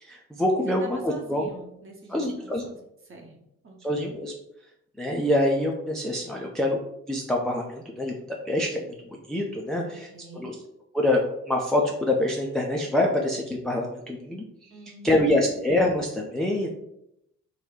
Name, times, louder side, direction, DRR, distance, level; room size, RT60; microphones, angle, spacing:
voice 1, 0.0-1.5 2.1-2.7 3.8-4.3 5.0-6.8 7.1-10.1 10.3-10.5 10.9-11.2 11.5-14.4 15.0-16.7, left 1 dB, ahead, -1 dB, 0.4 m, -25 dB
voice 2, 0.6-2.8 3.0-3.3 3.6-4.0 9.8-10.5 14.7-15.6, right 2 dB, 30° right, 0 dB, 1.0 m, -44 dB
2.9 x 2.3 x 3.7 m, 0.80 s
figure-of-eight pair, 40°, 42 cm